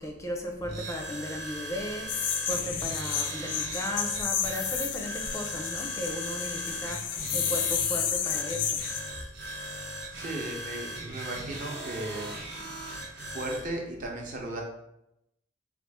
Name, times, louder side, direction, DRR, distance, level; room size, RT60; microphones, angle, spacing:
voice 1, 0.0-8.8, left 1 dB, 15° left, 1 dB, 0.4 m, -36 dB
sound 1, 0.6-13.7, right 1 dB, 65° right, 1.1 m, -39 dB
sound 2, 2.1-9.1, left 8 dB, 80° left, 0.4 m, -31 dB
voice 2, 10.1-12.7 13.2-14.6, right 1 dB, 45° right, 0 dB, 0.8 m, -36 dB
4.3 x 2.4 x 3.5 m, 0.84 s
head